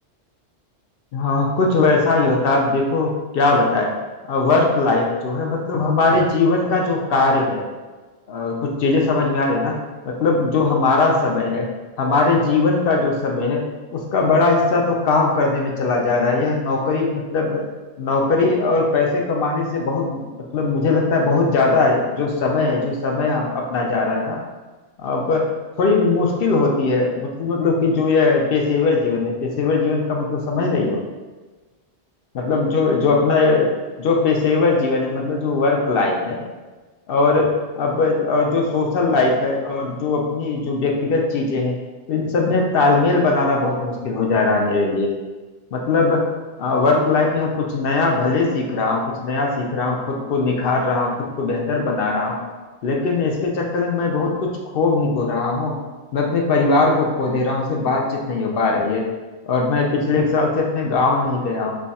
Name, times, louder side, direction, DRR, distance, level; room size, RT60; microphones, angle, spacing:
voice 1, 1.1-3.9 4.3-7.7 8.3-9.8 10.0-11.7 12.0-13.6 13.9-17.6 18.0-20.2 20.5-24.4 25.0-25.5 25.8-31.0 32.3-33.7 34.0-36.4 37.1-41.8 42.1-45.1 45.7-46.2 46.6-52.4 52.8-55.8 56.1-59.1 59.5-61.8, left 3 dB, 60° left, 0 dB, 0.7 m, -20 dB
3.2 x 2.3 x 4.0 m, 1.2 s
omnidirectional pair, 1.2 m